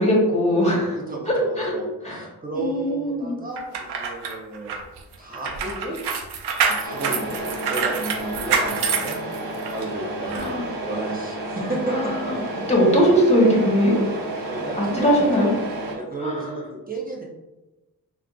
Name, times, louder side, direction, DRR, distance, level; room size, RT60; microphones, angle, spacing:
voice 1, 0.0-1.0 1.3-1.7 2.0-2.3 2.5-3.3 10.3-10.7 11.9-12.4 12.7-14.0 14.8-15.5 16.2-16.6, equal, 15° left, -3 dB, 1.2 m, -20 dB
voice 2, 1.1-4.8 5.2-6.0 6.7-9.2 9.7-12.5 14.4-15.5 15.9-17.2, right 2 dB, 20° right, -2 dB, 0.9 m, -32 dB
sound 1, 3.6-9.8 10.3-10.4, right 5 dB, 85° right, 0.5 m, -26 dB
Truck, 6.8-16.0, right 2 dB, 60° right, 1.0 m, -31 dB
3.5 x 2.3 x 2.5 m, 1.0 s
cardioid pair, 50°, 39 cm